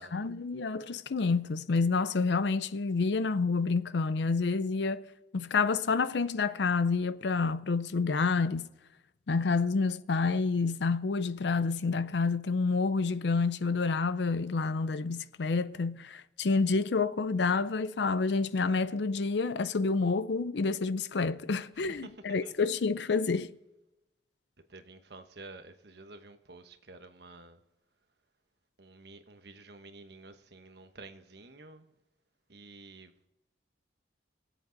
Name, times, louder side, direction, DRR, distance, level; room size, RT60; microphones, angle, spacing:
voice 1, 0.0-5.0 5.3-8.7 9.3-23.5, left 4 dB, 75° left, 0.5 m, -28 dB
voice 2, 21.8-22.5 24.7-27.6 28.8-31.9 32.5-33.3, right 3 dB, 65° right, 1.2 m, -50 dB
23.5 x 8.1 x 4.0 m
head